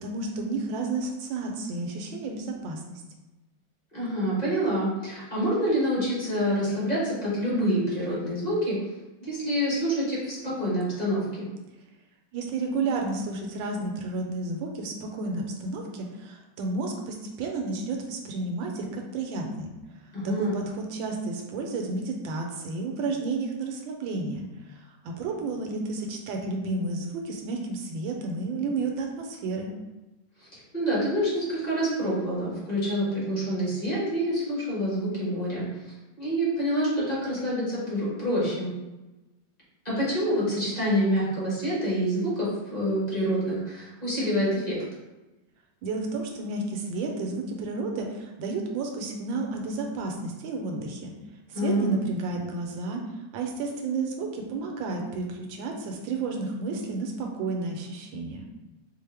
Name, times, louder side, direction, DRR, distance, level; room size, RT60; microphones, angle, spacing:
voice 1, 0.0-3.0 12.3-19.7 20.2-29.7 45.8-51.1 51.5-53.0 53.3-58.4, right 3 dB, 80° right, 2 dB, 1.3 m, -31 dB
voice 2, 3.9-8.8 9.2-11.5 20.1-20.6 30.7-35.7 36.2-38.7 39.8-44.8 51.5-52.0, equal, 25° left, -8 dB, 1.1 m, -27 dB
4.7 x 2.1 x 3.3 m, 1.1 s
omnidirectional pair, 2.1 m